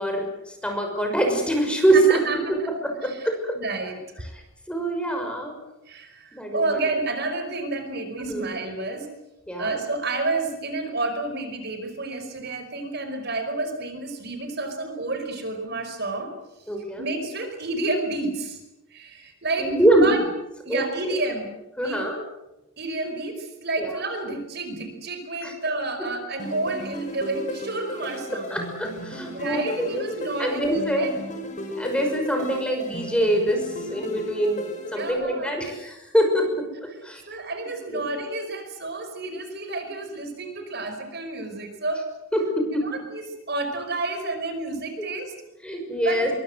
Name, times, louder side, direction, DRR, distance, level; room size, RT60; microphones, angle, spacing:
voice 1, 0.0-2.2 2.5-3.6 4.7-5.5 6.3-6.8 8.2-8.5 9.5-9.7 16.7-17.0 19.6-20.1 20.7-21.2 21.8-22.2 23.8-23.9 25.4-25.5 28.5-30.0 30.4-31.1 31.8-37.2 37.9-38.1 42.3-42.9 45.6-46.3, right 1 dB, 5° left, 3 dB, 6.0 m, -24 dB
voice 2, 1.9-2.7 3.0-3.3 3.5-4.0 5.8-9.1 9.6-16.3 17.0-18.6 18.9-19.7 20.0-20.2 20.6-21.5 21.8-22.0 22.8-28.6 29.3-31.1 34.9-35.7 37.3-42.1 42.8-45.3 46.0-46.2, right 2 dB, 50° right, 6 dB, 5.1 m, -30 dB
sound 1, 26.4-35.1, equal, 35° left, 5.6 m, -35 dB
24.0 x 24.0 x 7.9 m, 0.95 s
head